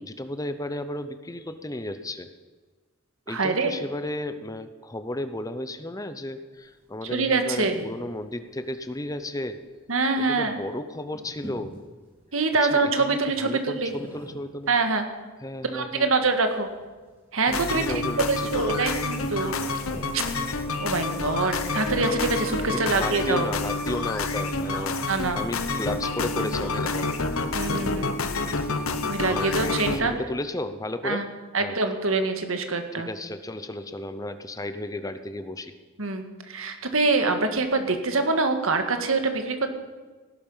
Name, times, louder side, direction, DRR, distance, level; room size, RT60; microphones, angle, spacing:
voice 1, 0.0-2.3 3.3-9.6 10.2-11.8 12.6-14.7 15.4-16.1 17.7-18.9 22.7-25.1 25.3-27.2 28.6-28.9 29.3-31.3 31.6-31.8 33.0-35.7, left 1 dB, 15° left, 10 dB, 0.7 m, -34 dB
voice 2, 3.3-3.7 7.1-7.8 9.9-10.6 12.3-13.9 14.7-15.0 15.7-16.7 17.3-17.8 18.3-19.5 20.1-20.2 20.8-23.5 25.1-25.4 27.5-28.1 29.0-30.1 31.0-31.2 31.5-33.1 36.0-39.7, right 3 dB, 70° right, 6 dB, 1.8 m, -25 dB
sound 1, 6.5-22.4, equal, 10° right, 4.2 m, -48 dB
sound 2, 17.5-30.0, left 3 dB, 80° left, 1.2 m, -28 dB
sound 3, 18.7-24.4 28.5-28.6, left 6 dB, 40° left, 1.0 m, -42 dB
17.5 x 12.0 x 5.6 m, 1.3 s
head